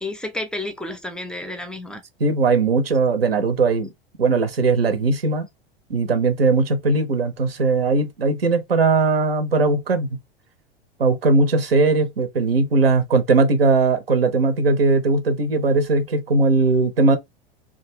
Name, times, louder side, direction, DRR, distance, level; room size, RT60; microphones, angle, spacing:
voice 1, 0.0-2.0, left 2 dB, 5° left, 0.5 m, -31 dB
voice 2, 2.2-3.9 4.2-5.5 5.9-10.2 11.0-17.2, right 3 dB, 80° right, 0.7 m, -19 dB
2.4 x 2.2 x 3.0 m
figure-of-eight pair, 90°, 29 cm